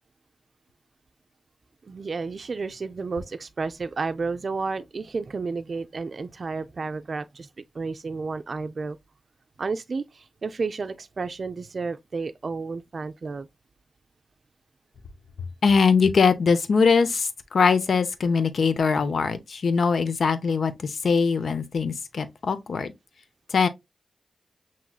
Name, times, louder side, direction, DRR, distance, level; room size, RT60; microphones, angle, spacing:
voice 1, 1.8-7.5 7.7-9.0 9.6-13.5, right 4 dB, 60° right, 0.4 m, -31 dB
voice 2, 15.6-22.9 23.5-23.7, left 5 dB, 75° left, 0.6 m, -22 dB
5.9 x 3.1 x 2.3 m
cardioid pair, 45°, 0 cm